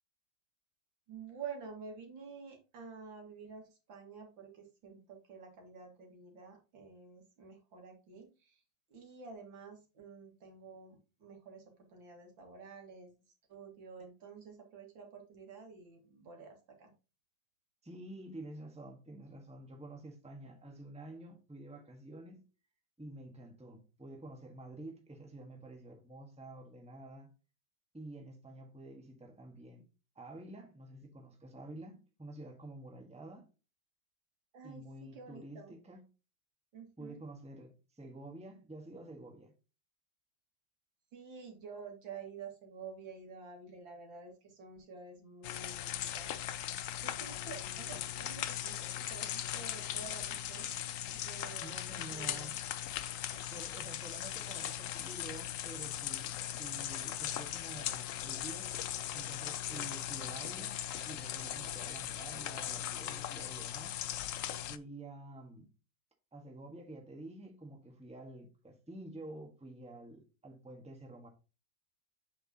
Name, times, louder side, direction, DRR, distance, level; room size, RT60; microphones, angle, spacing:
voice 1, 1.1-8.6 8.9-13.1 13.5-16.9 34.5-35.7 36.7-37.2 41.1-46.3 47.0-50.8 51.1-52.5 53.3-53.4, right 5 dB, 90° right, 2.7 m, -50 dB
voice 2, 17.8-22.4 23.0-27.3 27.9-29.8 30.1-33.5 34.6-36.0 37.0-39.5 51.6-52.5 53.5-56.3 56.6-58.7 59.1-63.9 64.7-65.7 66.3-71.3, right 1 dB, 5° right, 1.3 m, -49 dB
sound 1, 45.4-64.8, left 11 dB, 75° left, 0.7 m, -39 dB
8.0 x 6.0 x 2.9 m
omnidirectional pair, 2.0 m